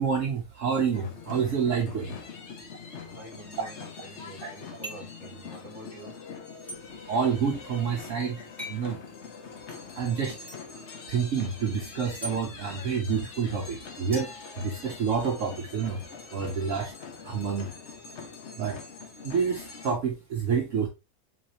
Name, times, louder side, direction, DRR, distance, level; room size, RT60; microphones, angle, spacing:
voice 1, 0.0-2.2 3.6-3.7 4.4-4.5 6.6-6.8 7.1-9.0 10.0-10.5 10.7-16.0 16.3-16.9 17.2-17.7 18.6-18.8 19.2-20.9, right 6 dB, 60° right, 1.0 m, -28 dB
sound 1, 0.9-19.9, left 5 dB, 55° left, 1.0 m, -44 dB
voice 2, 3.0-6.2, right 2 dB, 20° right, 1.6 m, -47 dB
glass-bangs, 4.8-5.2 6.7-6.8 8.6-8.9 10.5-10.6 12.2-12.4 14.1-15.2, equal, ahead, 2.0 m, -40 dB
4.0 x 4.0 x 2.8 m
omnidirectional pair, 1.6 m